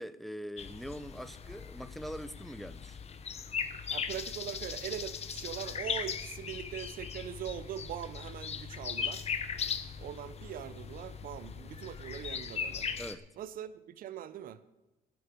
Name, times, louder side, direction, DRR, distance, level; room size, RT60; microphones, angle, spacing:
voice 1, 0.0-3.0 13.0-13.2, equal, ahead, 0.5 m, -42 dB
sound 1, 0.6-13.1, left 7 dB, 40° left, 0.9 m, -39 dB
voice 2, 3.9-9.2 10.0-12.9 13.4-14.6, right 10 dB, 55° right, 0.7 m, -41 dB
17.0 x 7.9 x 5.2 m
cardioid pair, 110°, 17 cm